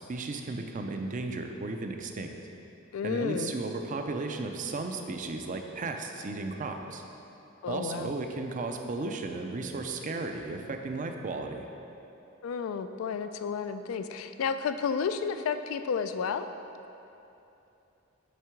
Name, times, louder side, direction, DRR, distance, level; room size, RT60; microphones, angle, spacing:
voice 1, 0.1-2.3 3.0-7.0 7.7-11.7, right 3 dB, 40° right, 4 dB, 0.5 m, -35 dB
voice 2, 2.9-3.5 7.6-8.1 12.4-16.5, left 6 dB, 80° left, 9 dB, 0.3 m, -31 dB
8.2 x 3.7 x 4.5 m, 2.9 s
head